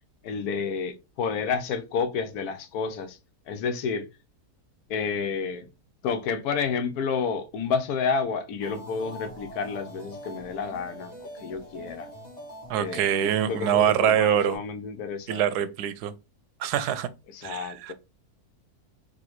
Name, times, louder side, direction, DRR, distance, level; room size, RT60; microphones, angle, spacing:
voice 1, 0.2-3.2 3.5-4.1 4.9-5.7 6.0-12.1 12.8-15.7 17.3-17.9, left 5 dB, 80° left, 1.1 m, -30 dB
sound 1, 8.6-14.6, equal, 25° left, 1.5 m, -43 dB
voice 2, 12.7-14.6 15.3-16.1 16.6-17.1 17.4-17.9, right 10 dB, 85° right, 1.1 m, -24 dB
3.7 x 3.4 x 3.0 m
omnidirectional pair, 1.6 m